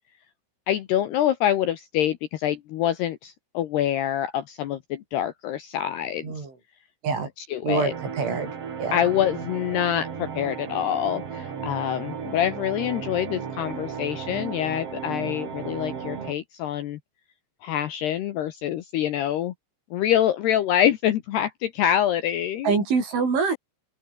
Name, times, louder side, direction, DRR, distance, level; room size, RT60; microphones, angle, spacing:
voice 1, 0.7-6.5 7.5-7.9 8.9-17.0 17.6-19.5 19.9-22.8, left 11 dB, 70° left, 2.7 m, -25 dB
voice 2, 7.6-8.5 8.8-9.0 22.6-23.6, right 5 dB, 65° right, 9.7 m, -25 dB
sound 1, 7.9-16.3, right 7 dB, 40° right, 2.4 m, -35 dB
open air
omnidirectional pair, 6.0 m